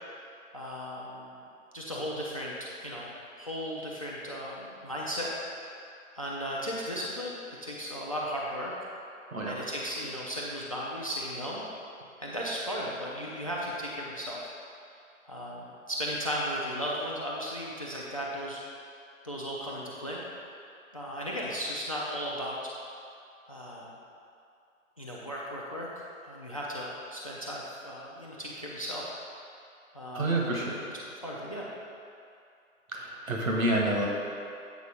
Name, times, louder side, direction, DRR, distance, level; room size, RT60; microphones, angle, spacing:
voice 1, 0.5-1.3 1.7-2.5 2.8-3.1 3.4-5.3 6.1-7.4 7.6-8.7 9.5-11.6 12.2-14.4 15.2-18.6 19.2-20.2 20.9-22.7 23.5-23.9 25.0-25.9 26.2-29.1 29.9-30.9 31.2-31.7, equal, 25° left, -4 dB, 0.4 m, -36 dB
voice 2, 30.1-30.7 32.9-34.1, right 1 dB, 75° right, -2 dB, 1.6 m, -28 dB
8.2 x 3.9 x 5.4 m, 2.5 s
figure-of-eight pair, 140°, 41 cm